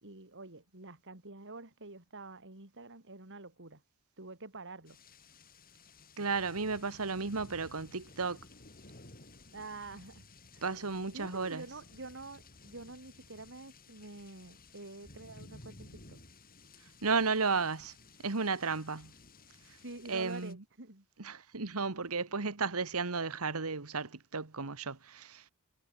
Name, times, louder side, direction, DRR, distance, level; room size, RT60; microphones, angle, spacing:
voice 1, 0.0-3.8 4.2-5.0 9.5-10.3 10.5-10.6 11.1-16.2 19.8-21.1, right 3 dB, 60° right, 3.6 m, -47 dB
sound 1, 4.9-20.5, left 2 dB, 40° left, 6.3 m, -56 dB
voice 2, 6.2-8.4 10.6-11.6 17.0-17.9 18.2-19.1 20.1-20.6 21.2-25.4, right 4 dB, 75° right, 1.6 m, -33 dB
head